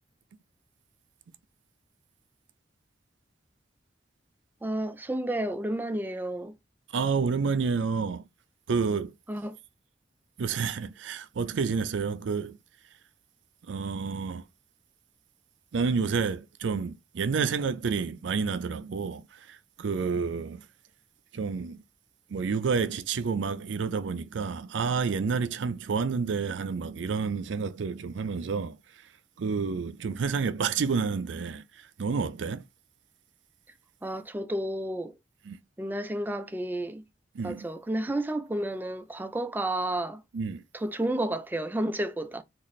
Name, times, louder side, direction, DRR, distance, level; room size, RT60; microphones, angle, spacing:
voice 1, 4.6-6.6 9.3-9.6 34.0-35.2 35.8-37.0 37.4-40.2 40.7-42.4, right 1 dB, 10° right, 0.3 m, -31 dB
voice 2, 6.9-8.2 8.7-9.1 10.4-12.6 13.7-14.4 15.7-19.2 19.5-20.7 21.3-21.8 22.3-28.8 29.4-32.6 35.5-35.6 37.4-37.7 40.3-40.6, right 5 dB, 75° right, 0.4 m, -29 dB
3.9 x 2.5 x 3.1 m
head